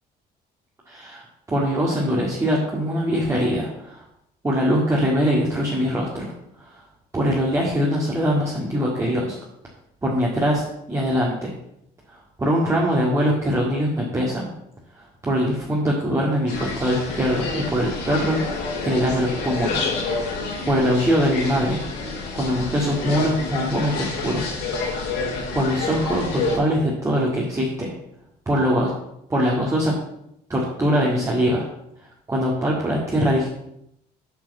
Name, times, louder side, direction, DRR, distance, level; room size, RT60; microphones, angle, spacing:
voice 1, 0.9-4.0 4.4-6.3 6.6-6.8 7.1-9.4 10.0-11.5 12.1-14.5 14.9-19.9 20.3-20.4 20.7-21.8 22.3-24.4 24.8-25.1 25.5-27.9 28.5-28.9 29.3-29.9 30.5-31.7 32.3-33.5, equal, 15° right, -4 dB, 2.0 m, -22 dB
sound 1, 16.5-26.6, left 3 dB, 80° left, 3.3 m, -28 dB
8.6 x 4.7 x 7.3 m, 0.79 s
cardioid pair, 110°, 17 cm